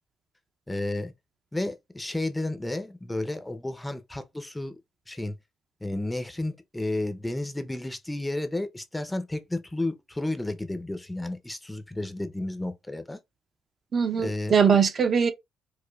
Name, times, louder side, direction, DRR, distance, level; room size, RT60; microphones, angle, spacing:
voice 1, 0.7-1.1 1.5-4.8 5.1-5.3 5.8-13.2 14.2-14.6, left 2 dB, 10° left, 0.5 m, -32 dB
voice 2, 13.9-15.3, right 6 dB, 40° right, 0.5 m, -21 dB
4.8 x 2.1 x 2.2 m
cardioid pair, 105°, 0 cm